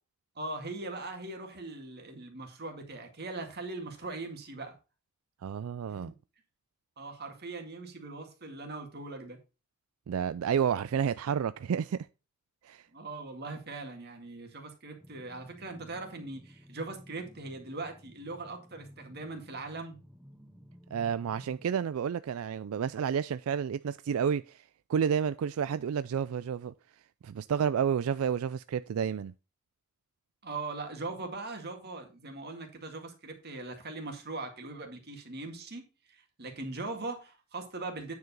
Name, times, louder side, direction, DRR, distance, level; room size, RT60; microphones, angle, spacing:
voice 1, 0.4-4.7 5.9-6.1 7.0-9.4 12.9-20.0 30.4-38.1, right 3 dB, 50° right, 2.0 m, -40 dB
voice 2, 5.4-6.1 10.1-12.1 12.6-12.8 20.9-24.6 24.9-26.7 27.2-29.3, right 7 dB, 90° right, 0.4 m, -30 dB
sound 1, 15.0-21.7, equal, 5° right, 0.8 m, -54 dB
9.3 x 4.8 x 5.4 m
head